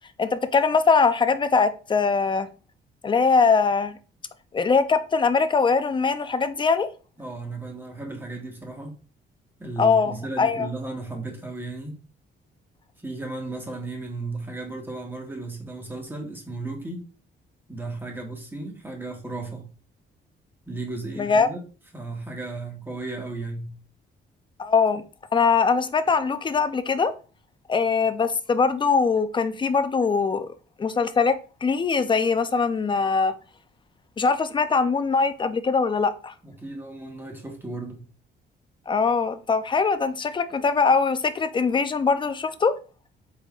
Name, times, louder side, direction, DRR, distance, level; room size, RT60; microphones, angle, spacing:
voice 1, 0.2-2.5 3.0-4.0 4.5-6.9 9.8-10.7 21.2-21.5 24.6-25.0 25.3-27.1 27.7-30.5 30.8-33.3 34.2-36.3 38.9-42.7, left 5 dB, 25° left, 0.4 m, -22 dB
voice 2, 7.2-9.0 9.6-12.0 13.0-17.0 17.7-19.7 20.7-21.6 21.9-23.8 36.4-38.0, right 2 dB, 10° right, 1.3 m, -35 dB
4.1 x 3.6 x 2.4 m
cardioid pair, 90°, 20 cm